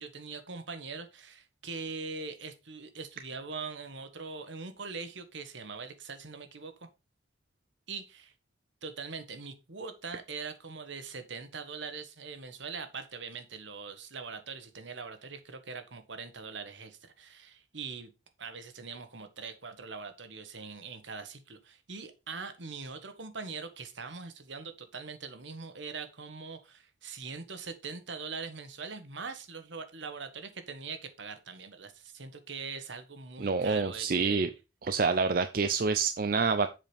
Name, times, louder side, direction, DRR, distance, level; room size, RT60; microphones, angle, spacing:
voice 1, 0.0-6.9 7.9-8.3 8.8-18.1 18.4-34.5, right 4 dB, 70° right, 1.3 m, -42 dB
voice 2, 33.4-34.5 34.8-36.7, right 4 dB, 45° right, 0.5 m, -27 dB
7.5 x 5.0 x 5.1 m
head